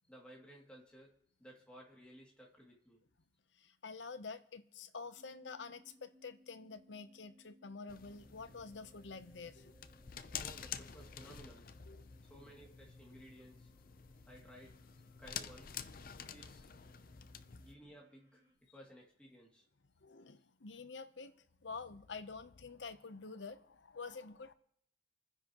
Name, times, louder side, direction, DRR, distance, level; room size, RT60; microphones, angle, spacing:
voice 1, 0.0-1.1 1.4-3.0 10.4-11.7 12.2-13.7 14.3-14.8 15.2-15.8 16.2-16.7 17.6-18.4 18.7-19.6, equal, 5° left, 2.5 m, -57 dB
voice 2, 3.5-9.7 11.9-12.0 20.0-24.5, left 4 dB, 85° left, 0.8 m, -48 dB
sound 1, 5.2-18.6, equal, 15° right, 3.3 m, -68 dB
sound 2, 7.9-17.7, left 8 dB, 50° left, 0.6 m, -49 dB
28.0 x 10.0 x 3.0 m
head